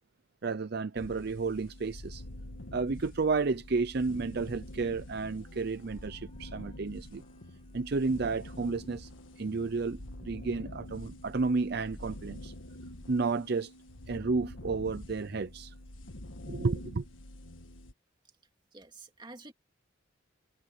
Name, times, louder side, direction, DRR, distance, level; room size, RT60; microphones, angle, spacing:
voice 1, 0.4-2.2 2.7-7.2 7.7-9.1 9.4-12.5 13.1-13.7 14.1-15.7 16.5-17.0, right 4 dB, 55° right, 0.6 m, -32 dB
sound 1, 1.0-17.9, left 1 dB, 85° left, 1.6 m, -46 dB
Wind instrument woodwind instrument, 4.1-10.9, left 3 dB, 30° left, 6.5 m, -73 dB
voice 2, 18.7-19.5, right 2 dB, 25° right, 2.2 m, -49 dB
head